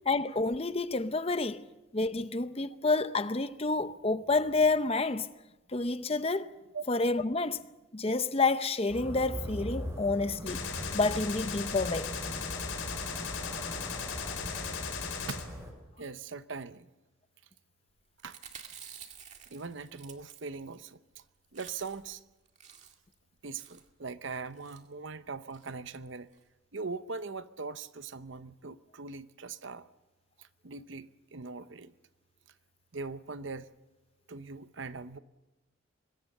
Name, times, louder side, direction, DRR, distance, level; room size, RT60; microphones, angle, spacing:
voice 1, 0.1-1.6 1.9-5.3 5.7-6.5 6.9-7.6 7.9-10.7 10.9-12.1, left 3 dB, 30° left, 0.7 m, -29 dB
sound 1, 8.9-15.7, equal, 15° right, 6.7 m, -40 dB
Gunshot gunfire, 10.5-15.5, left 6 dB, 75° left, 3.7 m, -37 dB
voice 2, 16.0-16.9 18.2-18.4 19.5-21.0 21.5-22.2 23.4-26.3 26.7-29.9 30.4-31.9 32.9-33.7 34.3-35.2, right 4 dB, 65° right, 0.9 m, -41 dB
Chewing mastication, 18.2-20.8 21.1-21.2 21.4-22.1 22.4-23.1 23.6-23.9 24.5-24.8 25.5-25.7 26.0-26.1 26.3-26.4, right 8 dB, 35° right, 2.1 m, -50 dB
24.5 x 21.0 x 6.7 m
head